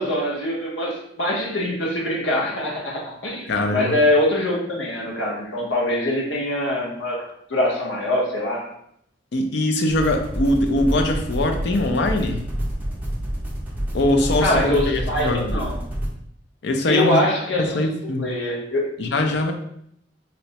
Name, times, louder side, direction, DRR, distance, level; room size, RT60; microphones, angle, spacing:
voice 1, 0.0-8.7 14.4-15.8 16.9-17.8 18.2-18.9, left 1 dB, 85° left, -2 dB, 0.8 m, -23 dB
voice 2, 3.5-4.0 9.3-12.4 13.9-15.5 16.6-17.2 17.6-18.3 19.0-19.5, left 2 dB, 65° left, 5 dB, 0.5 m, -22 dB
sound 1, 9.9-16.1, right 1 dB, 10° right, 0.6 m, -28 dB
4.1 x 2.1 x 2.7 m, 0.71 s
head